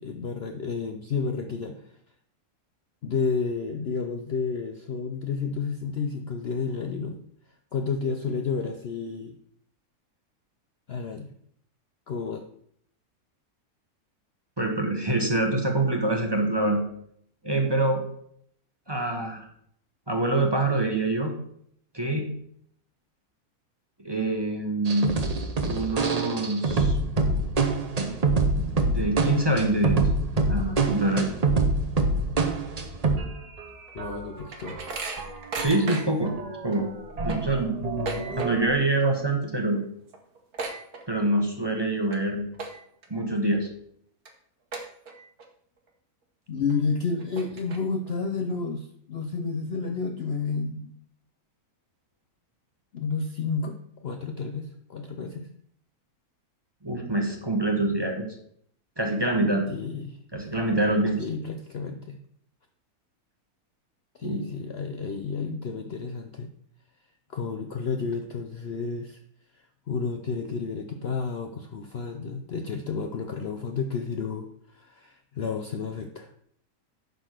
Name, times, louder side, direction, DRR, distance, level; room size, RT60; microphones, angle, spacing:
voice 1, 0.0-1.9 3.0-7.2 7.7-9.4 10.9-11.3 12.1-12.4 33.9-34.8 38.1-38.2 46.5-50.9 52.9-55.5 59.7-60.2 61.2-62.2 64.2-66.5 67.3-69.2 69.5-76.3, left 5 dB, 55° left, 5 dB, 0.7 m, -31 dB
voice 2, 14.6-16.8 17.4-18.0 18.9-19.5 20.1-21.3 21.9-22.3 24.0-25.2 25.6-27.0 28.5-30.0 30.5-31.3 35.6-36.3 36.6-36.9 37.2-38.1 38.4-39.8 41.1-42.5 43.1-43.7 56.8-58.3 59.0-59.6 60.3-61.2 64.2-64.4, right 2 dB, 20° right, 2 dB, 1.1 m, -25 dB
sound 1, 24.8-33.3 33.6-33.7 34.0-35.9 36.2-38.7, right 3 dB, 35° right, 0.7 m, -26 dB
sound 2, 33.9-36.3 36.7-36.8 37.1-38.8 39.1-39.4 39.7-39.8 40.1-41.5 41.9-42.2 42.5-43.1 43.6-43.7 44.2-44.3 44.7-45.4 45.9-46.0 46.7-46.8 47.2-48.1, right 4 dB, 70° right, 1.8 m, -36 dB
10.5 x 3.9 x 6.4 m, 0.68 s
omnidirectional pair, 1.6 m